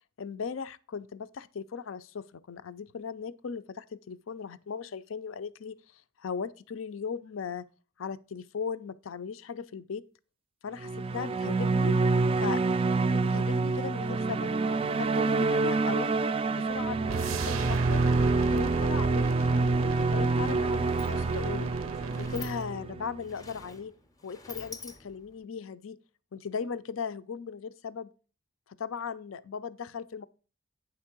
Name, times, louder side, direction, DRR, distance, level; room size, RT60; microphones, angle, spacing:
voice 1, 0.2-7.7 8.0-10.0 10.6-12.0 12.4-12.6 13.1-14.5 15.0-16.1 16.5-18.0 18.5-21.7 22.2-23.9 24.2-26.0 26.3-28.1 28.7-30.3, left 6 dB, 70° left, 0.5 m, -38 dB
sound 1, 10.8-23.3, right 3 dB, 30° right, 0.3 m, -27 dB
sound 2, 17.1-22.7, right 4 dB, 85° right, 0.6 m, -37 dB
Sliding door, 20.6-25.4, left 4 dB, 15° left, 0.6 m, -48 dB
9.4 x 3.6 x 5.9 m
head